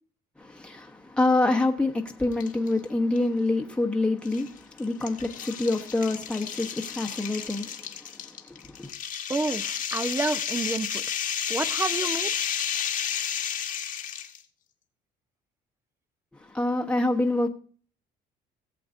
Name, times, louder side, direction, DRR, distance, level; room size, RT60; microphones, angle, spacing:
voice 1, 0.4-8.9 16.3-17.5, left 2 dB, 5° left, 1.1 m, -27 dB
sound 1, 2.3-2.7 3.2-3.3 4.3-14.4, left 9 dB, 50° left, 1.3 m, -32 dB
voice 2, 9.3-11.0 11.5-12.4, right 3 dB, 15° right, 0.7 m, -29 dB
17.5 x 7.7 x 2.6 m
cardioid pair, 110°, 17 cm